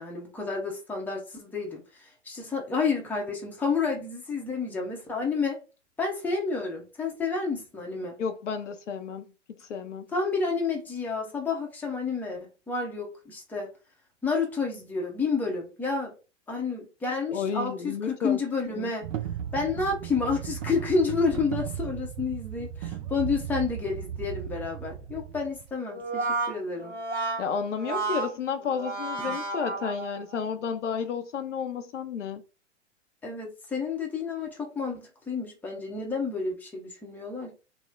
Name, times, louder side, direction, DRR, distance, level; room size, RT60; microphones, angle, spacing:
voice 1, 0.0-5.6 6.0-8.2 10.1-13.7 14.2-16.1 16.5-19.1 19.5-26.9 29.3-29.4 33.2-37.6, left 4 dB, 5° left, 0.7 m, -30 dB
voice 2, 8.2-9.3 9.7-10.1 17.3-18.4 18.7-18.9 27.4-32.4, left 6 dB, 75° left, 0.6 m, -32 dB
sound 1, 19.0-25.7, right 9 dB, 30° right, 0.4 m, -36 dB
Brass instrument, 25.9-30.4, right 3 dB, 70° right, 1.1 m, -32 dB
3.0 x 2.1 x 3.6 m
figure-of-eight pair, 110°, 37 cm